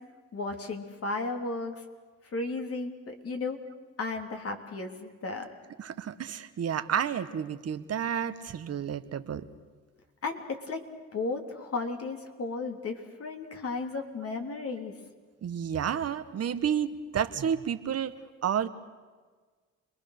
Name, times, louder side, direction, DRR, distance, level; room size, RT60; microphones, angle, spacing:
voice 1, 0.3-1.8 2.3-3.6 4.0-5.5 10.2-10.8 11.1-14.9, left 3 dB, 50° left, 4 dB, 3.3 m, -34 dB
voice 2, 5.8-9.4 15.4-18.1 18.4-18.7, right 8 dB, 55° right, 10 dB, 1.3 m, -30 dB
29.0 x 21.0 x 6.7 m, 1.4 s
cardioid pair, 90°, 30 cm